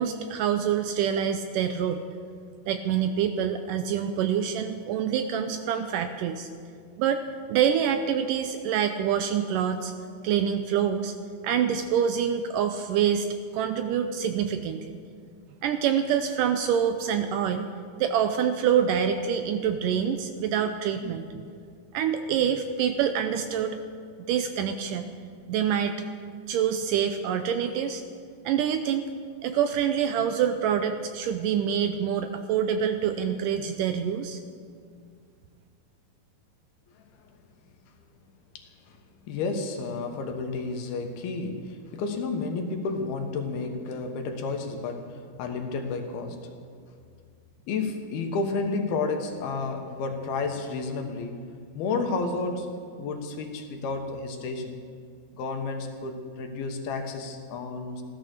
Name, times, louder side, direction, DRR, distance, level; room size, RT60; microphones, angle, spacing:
voice 1, 0.0-2.1 2.7-6.5 7.0-7.2 7.5-9.9 10.2-11.1 11.4-13.3 13.5-14.9 15.6-17.7 18.0-21.3 21.9-23.8 24.3-25.1 25.5-26.0 26.5-28.0 28.5-29.1 29.4-34.4, right 8 dB, 85° right, 7 dB, 2.0 m, -26 dB
voice 2, 38.5-39.0 39.3-46.5 47.7-51.4 51.7-54.8 55.3-58.0, left 3 dB, 80° left, 4 dB, 3.2 m, -31 dB
16.0 x 12.5 x 6.5 m, 2.2 s
omnidirectional pair, 4.4 m